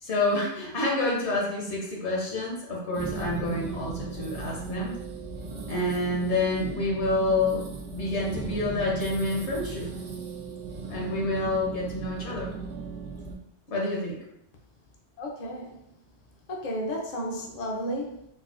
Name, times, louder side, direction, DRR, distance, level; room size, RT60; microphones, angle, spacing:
voice 1, 0.0-4.9 5.7-7.7 7.9-9.9 10.9-12.5 13.7-14.2, left 2 dB, 70° left, -3 dB, 1.2 m, -28 dB
sound 1, 2.9-13.3, right 4 dB, 70° right, 0.9 m, -37 dB
voice 2, 15.2-15.7 16.5-18.3, equal, 45° left, -2 dB, 0.5 m, -33 dB
4.0 x 2.1 x 2.4 m, 0.75 s
omnidirectional pair, 1.2 m